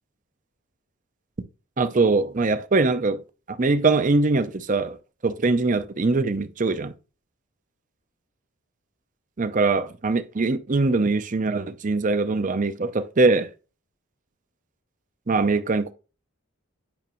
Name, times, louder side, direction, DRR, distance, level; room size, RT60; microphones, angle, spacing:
voice 1, 1.8-3.2 3.5-5.0 5.2-6.9 9.4-13.5 15.3-15.9, right 3 dB, 35° right, 0.5 m, -22 dB
8.8 x 5.8 x 3.0 m
head